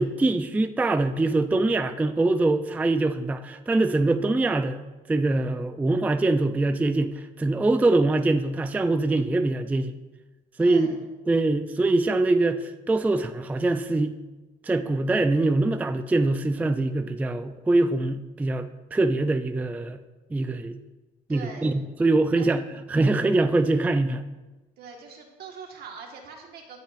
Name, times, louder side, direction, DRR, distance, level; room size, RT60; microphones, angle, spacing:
voice 1, 0.0-4.8 5.1-10.0 10.6-11.0 11.3-14.1 14.6-20.0 20.3-20.8 21.3-24.2, right 2 dB, 10° right, 9 dB, 0.3 m, -23 dB
voice 2, 10.6-11.0 21.3-21.7 22.4-22.5 24.8-26.8, right 5 dB, 70° right, 2 dB, 1.6 m, -42 dB
16.0 x 5.7 x 2.5 m, 1.1 s
cardioid pair, 110°, 17 cm